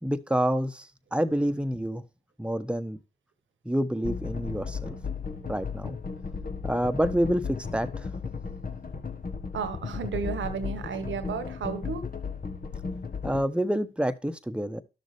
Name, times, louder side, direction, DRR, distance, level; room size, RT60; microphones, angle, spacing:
voice 1, 0.0-2.0 2.4-3.0 3.6-5.0 5.5-6.0 6.6-8.1 13.2-14.8, equal, 5° right, 1.2 m, -28 dB
sound 1, 4.0-13.4, left 5 dB, 45° left, 1.4 m, -35 dB
voice 2, 9.5-12.1, right 6 dB, 75° right, 1.5 m, -33 dB
12.0 x 6.5 x 3.3 m
supercardioid pair, 40°, 20 cm